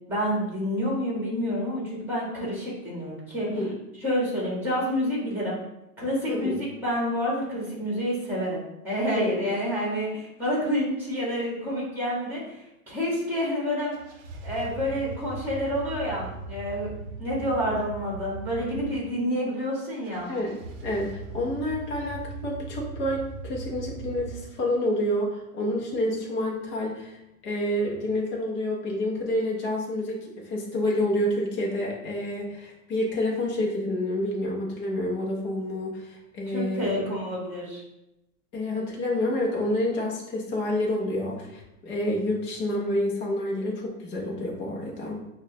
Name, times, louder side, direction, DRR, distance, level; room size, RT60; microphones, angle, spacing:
voice 1, 0.1-3.5 4.0-5.6 6.0-12.5 12.9-13.9 14.4-16.9 17.2-20.3 36.5-37.8, equal, 5° right, -5 dB, 1.3 m, -28 dB
voice 2, 9.1-9.4 20.3-20.5 20.8-37.0 38.5-45.2, left 1 dB, 15° left, -3 dB, 0.3 m, -28 dB
sound 1, 13.9-18.9 20.0-24.4, right 2 dB, 60° right, 0.7 m, -39 dB
5.9 x 2.1 x 2.7 m, 0.90 s
supercardioid pair, 140°, 46 cm